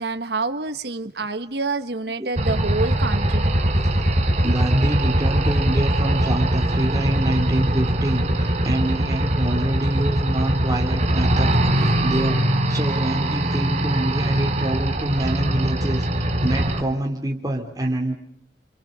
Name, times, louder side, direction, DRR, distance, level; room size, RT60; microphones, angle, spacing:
voice 1, 0.0-3.6, right 3 dB, 60° right, 1.2 m, -27 dB
sound 1, 2.4-16.8, right 1 dB, 40° right, 3.2 m, -22 dB
voice 2, 4.4-18.1, right 1 dB, 20° right, 3.5 m, -25 dB
29.5 x 26.0 x 6.7 m
head